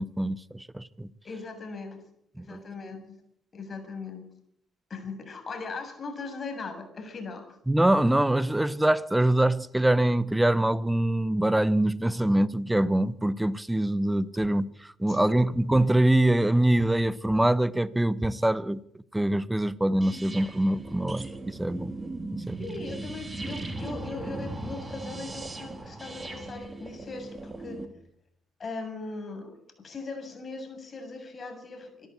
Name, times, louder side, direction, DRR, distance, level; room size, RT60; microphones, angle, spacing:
voice 1, 0.0-1.1 2.4-2.6 7.7-18.8 19.1-21.9 22.3-22.6, right 1 dB, 10° right, 1.2 m, -24 dB
voice 2, 1.2-2.0 2.4-3.2 3.5-4.2 4.9-7.6 15.1-15.4 22.6-27.8 28.6-29.5 29.8-32.1, left 3 dB, 40° left, 7.2 m, -39 dB
sound 1, 20.0-27.9, right 2 dB, 25° right, 4.2 m, -38 dB
25.5 x 13.0 x 8.7 m
hypercardioid pair, 55°, 0 cm